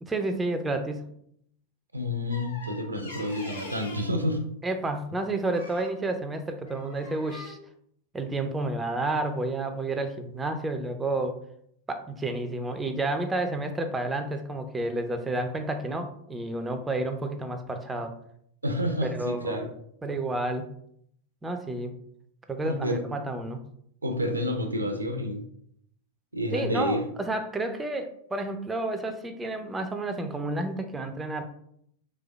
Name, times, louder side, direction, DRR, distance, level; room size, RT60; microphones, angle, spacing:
voice 1, 0.0-1.1 4.6-7.6 8.1-11.4 11.9-18.1 19.0-19.6 20.0-20.7 21.4-21.9 22.5-23.6 26.5-31.4, right 2 dB, 10° right, 6 dB, 0.3 m, -30 dB
voice 2, 1.9-4.4 18.6-19.7 22.6-23.0 24.0-25.4 26.3-27.0, left 1 dB, 80° right, 5 dB, 0.4 m, -29 dB
sound 1, 2.3-4.2 5.5-6.0 6.6-7.5, left 2 dB, 75° left, 0.7 m, -43 dB
3.4 x 3.1 x 2.2 m, 0.69 s
figure-of-eight pair, 90°, 0 cm